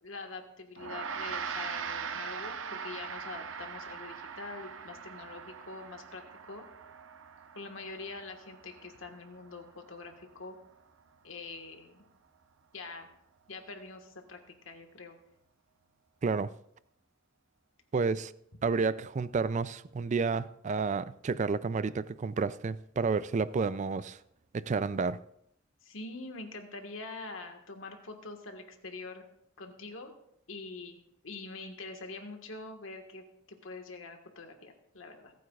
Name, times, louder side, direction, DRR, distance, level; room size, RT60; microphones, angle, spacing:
voice 1, 0.0-6.2 6.5-6.6 7.5-10.6 11.2-12.0 12.7-13.1 13.5-14.4 14.6-15.2 25.8-29.2 29.6-30.1 30.5-31.0 31.2-35.3, left 3 dB, 80° left, 1.6 m, -44 dB
Gong, 0.8-10.4, right 6 dB, 75° right, 0.8 m, -41 dB
voice 2, 17.9-18.3 18.6-24.2 24.5-25.2, right 4 dB, 35° right, 0.3 m, -30 dB
27.0 x 9.3 x 2.4 m
head